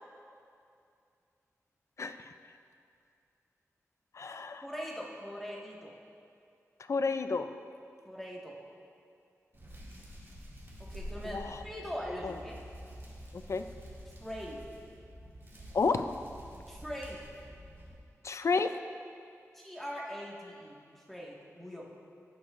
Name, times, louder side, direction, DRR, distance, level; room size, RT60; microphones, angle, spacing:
voice 1, 2.0-2.3 4.1-4.6 6.9-7.5 11.2-11.6 12.2-12.4 13.3-13.6 15.7-16.0 18.2-18.7, left 4 dB, 60° left, 9 dB, 0.4 m, -31 dB
voice 2, 4.6-5.9 8.0-8.6 10.9-12.6 14.2-14.6 16.7-17.2 19.5-20.8 21.1-21.9, equal, 5° left, -4 dB, 1.8 m, -41 dB
Hands, 9.5-17.9, equal, 45° right, 2.3 m, -48 dB
16.5 x 6.2 x 2.6 m, 2.4 s
wide cardioid pair, 75°, 6 cm